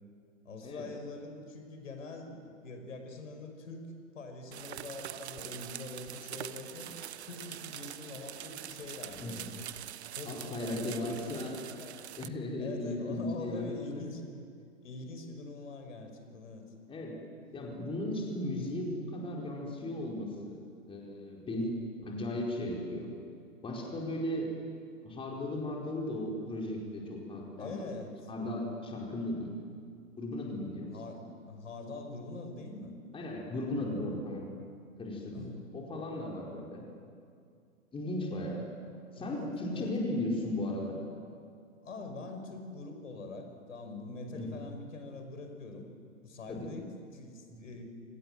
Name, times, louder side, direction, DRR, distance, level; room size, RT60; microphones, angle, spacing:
voice 1, 0.4-3.8 4.1-6.9 7.2-9.6 10.2-12.0 12.6-14.2 14.8-16.6 21.4-21.8 27.6-28.3 30.9-33.0 35.3-35.6 39.1-39.9 41.8-45.9 46.2-47.8, left 3 dB, 65° left, 5 dB, 5.6 m, -44 dB
sound 1, 4.5-12.3, right 11 dB, 50° right, 1.1 m, -44 dB
voice 2, 10.3-11.6 12.2-14.1 16.9-17.2 17.5-20.6 20.9-21.7 22.0-23.1 23.6-24.5 25.0-27.8 28.3-29.6 30.2-30.9 33.1-34.5 35.0-36.8 37.9-38.6 39.1-41.0 44.3-44.6 46.5-46.7 47.5-47.6, left 1 dB, 15° left, -1 dB, 4.8 m, -36 dB
29.0 x 26.0 x 7.7 m, 2.4 s
figure-of-eight pair, 115°, 41 cm